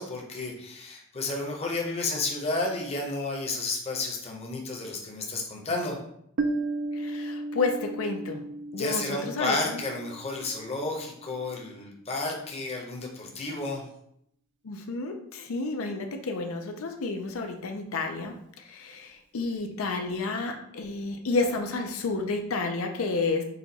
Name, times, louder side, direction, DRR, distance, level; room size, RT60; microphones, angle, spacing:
voice 1, 0.0-6.0 8.8-13.8, left 2 dB, 30° left, 0 dB, 0.7 m, -32 dB
Piano, 6.4-11.7, right 2 dB, 60° right, 0.4 m, -35 dB
voice 2, 6.9-8.4 8.7-9.8 14.6-18.3 18.6-23.4, left 3 dB, 85° left, 4 dB, 0.5 m, -30 dB
4.2 x 2.3 x 4.0 m, 0.72 s
head